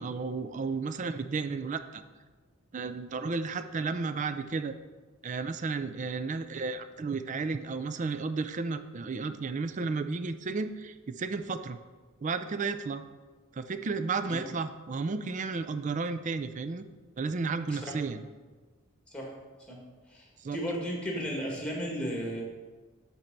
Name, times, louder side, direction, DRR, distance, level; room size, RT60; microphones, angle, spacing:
voice 1, 0.0-2.0 2.7-4.8 5.2-11.8 12.2-13.0 13.5-16.8 17.2-18.2 20.4-20.6, right 4 dB, 35° right, 10 dB, 0.4 m, -33 dB
voice 2, 20.1-22.4, equal, 5° left, -2 dB, 1.7 m, -34 dB
8.9 x 4.4 x 5.3 m, 1.3 s
head